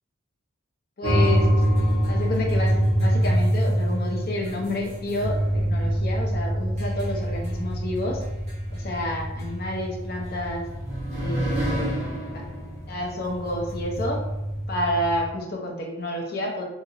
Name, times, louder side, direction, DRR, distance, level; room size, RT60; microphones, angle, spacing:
voice 1, 1.0-1.5 2.1-8.2 8.7-10.7 11.2-11.9 12.3-12.4 12.9-14.2 14.7-16.6, left 1 dB, 45° left, 0 dB, 0.6 m, -29 dB
sound 1, 1.0-15.2, equal, 35° right, 0.9 m, -25 dB
2.8 x 2.8 x 2.6 m, 0.96 s
head